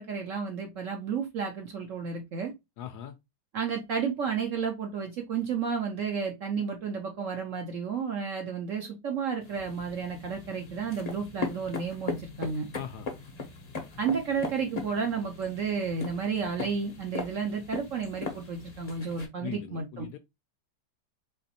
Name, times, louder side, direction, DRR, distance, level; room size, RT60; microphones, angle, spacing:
voice 1, 0.0-2.5 3.5-12.7 14.0-20.1, right 6 dB, 60° right, 0.8 m, -32 dB
voice 2, 2.8-3.1 12.7-13.1 19.4-20.2, left 10 dB, 70° left, 1.0 m, -40 dB
sound 1, 9.4-19.3, left 4 dB, 40° left, 0.5 m, -39 dB
4.1 x 3.0 x 2.7 m
omnidirectional pair, 2.0 m